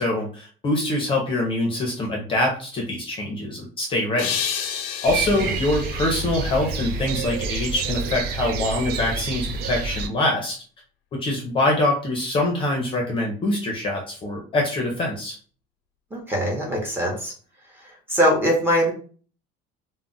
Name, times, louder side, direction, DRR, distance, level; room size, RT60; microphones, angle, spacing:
voice 1, 0.0-4.4 5.0-10.6 11.1-15.4, left 1 dB, 25° left, 0 dB, 0.6 m, -24 dB
sound 1, 4.2-7.3, left 8 dB, 90° left, 0.5 m, -31 dB
sound 2, 5.0-10.1, right 4 dB, 55° right, 0.4 m, -28 dB
voice 2, 16.1-17.3 17.8-18.9, equal, 10° right, -2 dB, 0.8 m, -22 dB
2.3 x 2.1 x 3.7 m, 0.41 s
cardioid pair, 165°, 20 cm